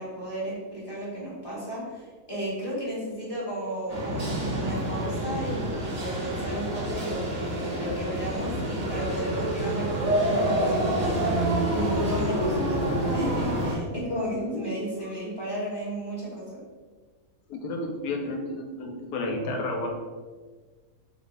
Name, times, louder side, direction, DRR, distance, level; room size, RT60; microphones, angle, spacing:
voice 1, 0.0-11.4 11.7-12.7 13.1-16.5, equal, 20° left, -7 dB, 0.7 m, -34 dB
sound 1, 3.9-13.8, right 1 dB, 40° right, 0.5 m, -27 dB
voice 2, 14.3-14.7 17.5-19.9, left 2 dB, 85° left, 2 dB, 1.2 m, -31 dB
3.1 x 2.2 x 4.0 m, 1.4 s
omnidirectional pair, 1.7 m